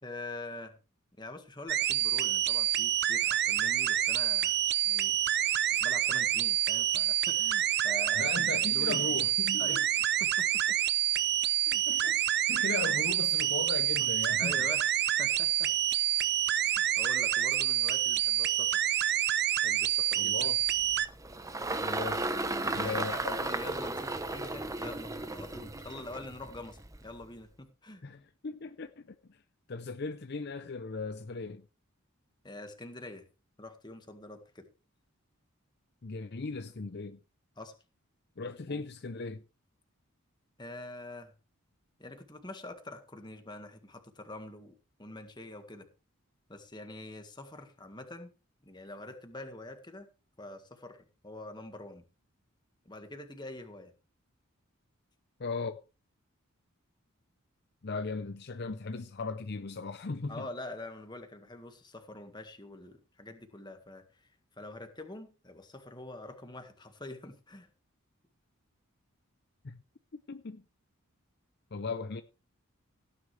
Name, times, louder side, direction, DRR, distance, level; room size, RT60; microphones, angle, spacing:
voice 1, 0.0-0.8 1.2-4.6 4.8-5.2 5.8-8.3 8.7-9.1 9.6-9.8 10.2-10.8 11.7-11.8 14.4-14.9 15.2-15.7 16.6-18.9 19.6-20.4 22.5-28.0 32.4-33.2 33.6-34.7 37.6-37.7 38.7-38.8 40.6-41.3 42.0-45.9 46.5-48.3 48.6-50.1 50.4-52.0 52.9-53.9 60.3-64.0 64.6-67.7, left 2 dB, 20° left, 1.8 m, -45 dB
sound 1, 1.7-21.1, right 11 dB, 50° right, 0.7 m, -28 dB
voice 2, 8.1-9.8 11.4-11.5 11.9-12.2 12.5-14.6 20.2-20.6 21.8-22.3 22.7-23.4 28.0-29.4 29.7-31.7 36.0-37.2 38.4-39.4 55.4-55.8 57.8-60.5 69.6-69.8 70.1-70.6 71.7-72.2, left 4 dB, 50° left, 0.6 m, -37 dB
Engine, 20.6-27.2, right 2 dB, 15° right, 0.8 m, -35 dB
17.0 x 9.9 x 3.3 m
head